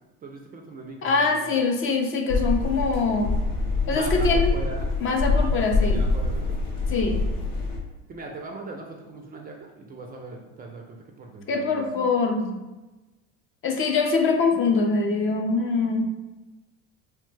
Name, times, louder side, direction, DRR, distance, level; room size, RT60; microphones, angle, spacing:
voice 1, 0.2-1.6 3.8-4.9 5.4-6.6 8.1-11.8, right 2 dB, 25° right, 1 dB, 0.3 m, -40 dB
voice 2, 1.0-3.3 3.9-4.5 5.0-6.0 6.9-7.2 11.5-12.5 13.6-16.1, left 4 dB, 35° left, 3 dB, 0.5 m, -23 dB
sound 1, 2.3-7.8, left 3 dB, 80° left, 0.8 m, -25 dB
3.0 x 2.1 x 3.2 m, 1.1 s
hypercardioid pair, 85°, 36 cm